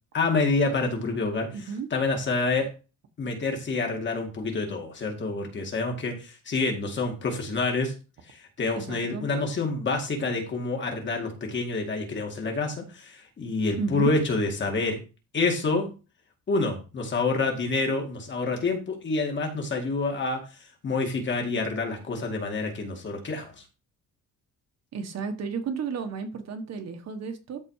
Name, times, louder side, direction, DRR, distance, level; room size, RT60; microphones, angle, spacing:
voice 1, 0.1-2.7 3.2-7.9 8.3-15.0 15.3-15.9 16.5-23.6, left 3 dB, 35° left, 2 dB, 2.3 m, -28 dB
voice 2, 1.5-1.9 8.7-9.2 13.8-14.1 24.9-27.6, right 5 dB, 50° right, 6 dB, 1.7 m, -32 dB
13.0 x 4.4 x 4.9 m, 0.32 s
cardioid pair, 175°, 34 cm